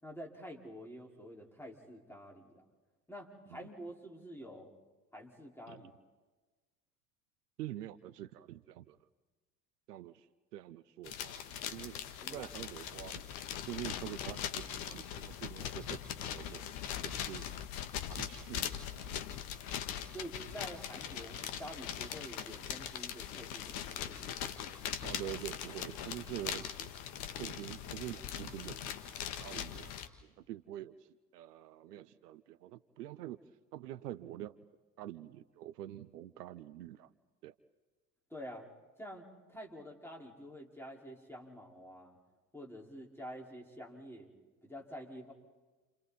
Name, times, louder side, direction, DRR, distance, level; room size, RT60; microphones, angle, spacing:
voice 1, 0.0-2.6 3.1-4.7 5.1-5.9 12.2-12.5 20.1-24.7 38.3-38.7 39.0-42.2 42.5-44.3 44.6-45.3, equal, 5° left, -1 dB, 5.1 m, -48 dB
voice 2, 7.6-9.0 9.9-10.3 10.5-11.9 12.3-13.2 13.7-16.7 17.0-17.5 18.1-19.2 25.0-26.9 27.4-28.8 29.4-29.9 30.2-33.4 33.7-34.6 35.0-37.1 37.4-37.5, right 13 dB, 75° right, 16 dB, 0.9 m, -46 dB
sound 1, 11.0-30.1, left 9 dB, 60° left, 1.7 m, -41 dB
30.0 x 29.5 x 4.3 m, 1.3 s
figure-of-eight pair, 65°, 48 cm